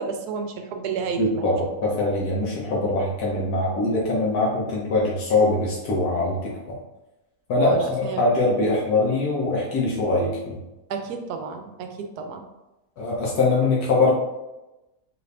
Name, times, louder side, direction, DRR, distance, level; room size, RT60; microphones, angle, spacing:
voice 1, 0.0-1.5 7.6-8.3 10.9-12.4, right 5 dB, 85° right, 5 dB, 1.1 m, -31 dB
voice 2, 1.2-6.5 7.5-10.6 13.0-14.1, left 2 dB, 80° left, -4 dB, 1.4 m, -22 dB
4.6 x 2.6 x 3.3 m, 1.0 s
omnidirectional pair, 1.6 m